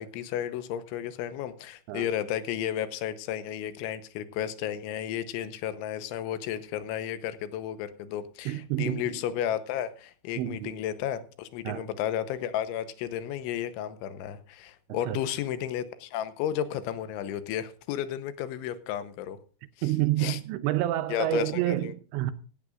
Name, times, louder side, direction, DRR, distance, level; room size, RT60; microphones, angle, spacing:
voice 1, 0.0-19.4 19.8-20.4 21.1-21.9, left 10 dB, 85° left, 3.2 m, -33 dB
voice 2, 8.5-9.2 10.4-10.7 11.7-11.9 15.1-15.2 19.8-22.3, right 15 dB, 80° right, 2.7 m, -28 dB
17.0 x 14.0 x 2.5 m
omnidirectional pair, 5.5 m